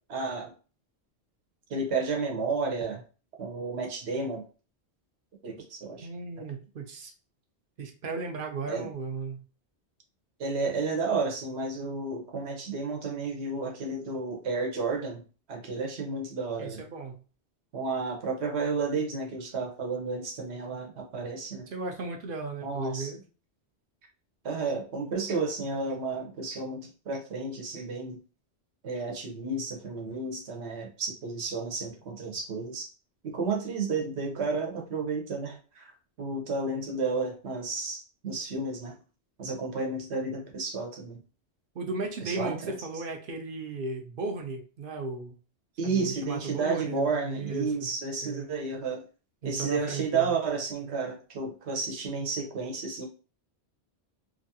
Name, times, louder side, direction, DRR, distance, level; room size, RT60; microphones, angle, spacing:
voice 1, 0.1-0.5 1.7-3.0 3.4-4.4 5.4-6.1 8.7-8.9 10.4-15.2 15.5-16.8 17.7-21.7 22.6-23.1 24.4-28.2 28.8-32.9 33.2-35.9 36.2-38.9 39.4-41.2 42.2-42.7 45.8-49.0 49.4-53.1, right 4 dB, 75° right, 2 dB, 1.1 m, -32 dB
voice 2, 6.0-7.1 7.8-9.4 16.6-17.2 21.7-23.2 41.7-45.4 45.8-47.9 48.2-48.5 49.4-50.3, right 3 dB, 60° right, 3 dB, 0.7 m, -35 dB
2.9 x 2.4 x 2.7 m, 0.36 s
omnidirectional pair, 1.1 m